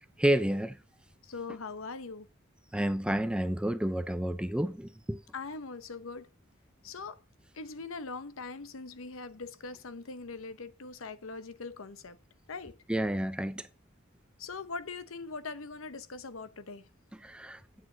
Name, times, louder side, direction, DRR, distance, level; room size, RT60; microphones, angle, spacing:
voice 1, 0.2-0.8 2.7-5.2 12.9-13.7 17.2-17.6, right 1 dB, 5° right, 0.5 m, -30 dB
voice 2, 1.2-2.3 5.3-6.3 6.8-7.2 7.5-12.2 12.5-12.8 14.4-16.9, left 4 dB, 75° left, 0.9 m, -41 dB
9.5 x 7.7 x 3.9 m
head